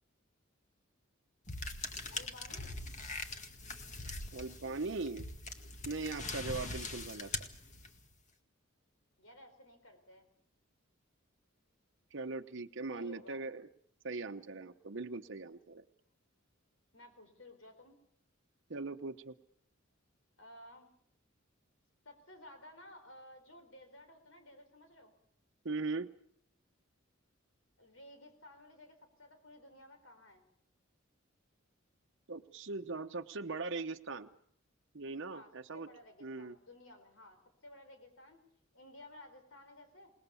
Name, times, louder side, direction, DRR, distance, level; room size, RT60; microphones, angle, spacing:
sound 1, 1.5-8.1, left 3 dB, 35° left, 2.0 m, -42 dB
voice 1, 2.1-2.8 9.2-10.3 12.9-13.4 16.9-18.0 20.4-20.9 22.0-25.1 27.8-30.4 35.3-38.4 38.7-40.1, left 1 dB, 75° left, 6 dB, 4.3 m, -55 dB
voice 2, 4.3-5.3 5.9-7.5 12.1-13.7 14.0-15.8 18.7-19.3 25.6-26.1 32.3-34.3 34.9-35.9 36.2-36.6, right 3 dB, 60° right, 5 dB, 0.9 m, -40 dB
27.5 x 19.5 x 7.0 m, 0.67 s
head